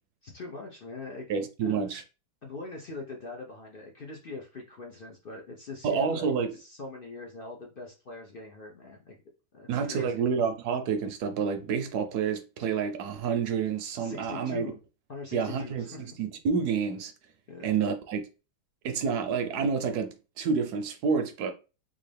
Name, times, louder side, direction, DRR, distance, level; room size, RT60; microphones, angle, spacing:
voice 1, 0.2-1.3 1.6-1.8 2.4-9.2 9.5-10.2 14.0-14.8 15.1-16.1 17.5-17.7, left 3 dB, 60° left, 0.5 m, -42 dB
voice 2, 1.3-2.0 5.8-6.6 9.7-14.7 15.3-17.1 17.6-18.2 18.8-21.5, right 6 dB, 75° right, 1.1 m, -29 dB
3.7 x 2.5 x 3.3 m
omnidirectional pair, 1.8 m